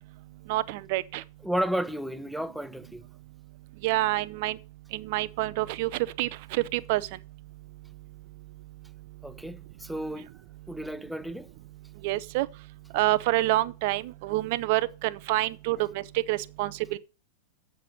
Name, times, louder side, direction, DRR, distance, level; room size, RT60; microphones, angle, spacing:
voice 1, 0.5-1.2 3.8-4.6 4.9-7.0 12.0-12.5 12.9-16.0 16.3-17.0, right 17 dB, 60° right, 0.7 m, -27 dB
voice 2, 1.4-3.0 9.2-10.3 10.7-11.5 15.7-15.8, equal, ahead, 0.6 m, -32 dB
7.6 x 6.7 x 6.3 m
hypercardioid pair, 105°, 0 cm